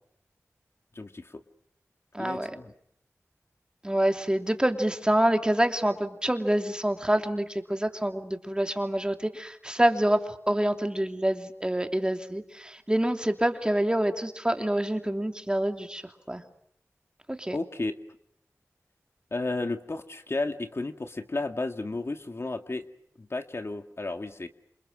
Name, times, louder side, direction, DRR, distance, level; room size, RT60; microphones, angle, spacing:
voice 1, 1.0-1.4 2.2-2.7 17.5-18.0 19.3-22.9 23.2-24.5, left 2 dB, 50° left, 7 dB, 2.2 m, -33 dB
voice 2, 2.1-2.5 3.8-10.2 10.5-16.0 16.3-16.4 17.3-17.6, right 1 dB, 15° right, 6 dB, 2.8 m, -26 dB
28.0 x 27.5 x 6.5 m, 0.69 s
wide cardioid pair, 65°, 5 cm